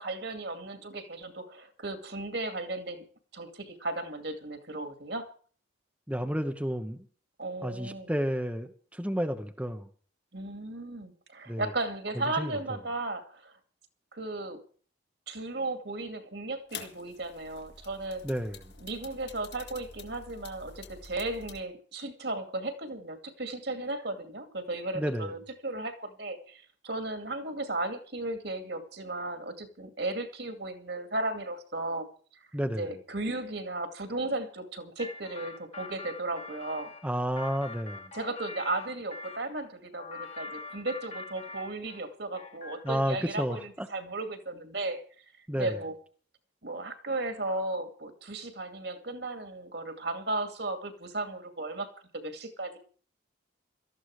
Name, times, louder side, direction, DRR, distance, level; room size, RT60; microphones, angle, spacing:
voice 1, 0.0-3.0 3.3-5.3 7.4-8.1 10.3-13.6 14.1-14.6 15.3-18.2 18.8-32.1 32.8-36.9 38.1-45.0 45.5-45.9 46.6-51.9 52.1-52.8, right 2 dB, 60° right, 2.4 m, -35 dB
voice 2, 6.1-7.1 7.6-9.9 11.5-11.7 12.4-12.6 18.2-18.7 24.9-25.3 32.5-32.9 37.0-38.1 42.8-43.9 45.5-45.8, equal, 5° right, 1.0 m, -31 dB
sound 1, 16.7-21.6, left 5 dB, 60° left, 2.2 m, -47 dB
sound 2, 35.0-39.5 40.0-42.1 42.4-43.3, left 4 dB, 35° left, 1.7 m, -44 dB
18.0 x 14.0 x 4.9 m
head